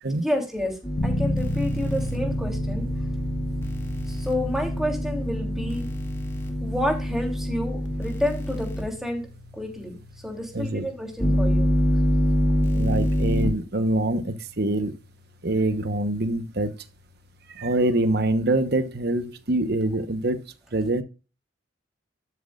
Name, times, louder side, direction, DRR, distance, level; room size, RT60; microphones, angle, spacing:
voice 1, 0.2-2.9 4.1-5.9 6.6-9.3 9.6-10.0 10.2-11.7, left 1 dB, ahead, 3.2 m, -29 dB
sound 1, 0.8-8.8 11.2-13.5, equal, 15° left, 1.9 m, -26 dB
sound 2, 1.0-17.7, left 1 dB, 65° left, 1.1 m, -35 dB
voice 2, 10.5-10.9 12.7-15.0 15.4-16.7 17.5-20.5 20.7-21.0, right 1 dB, 55° right, 1.0 m, -25 dB
12.5 x 8.0 x 2.4 m
head